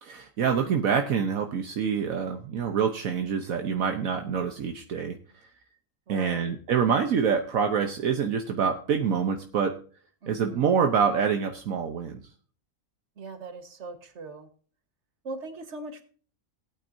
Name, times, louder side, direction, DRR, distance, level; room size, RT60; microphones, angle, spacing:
voice 1, 0.0-5.2 6.1-9.8 10.3-12.2, right 6 dB, 70° right, 5 dB, 1.3 m, -26 dB
voice 2, 6.1-6.5 10.2-10.7 13.2-14.5 15.2-16.0, right 3 dB, 50° right, 7 dB, 1.7 m, -40 dB
18.5 x 8.9 x 2.7 m, 0.42 s
omnidirectional pair, 1.5 m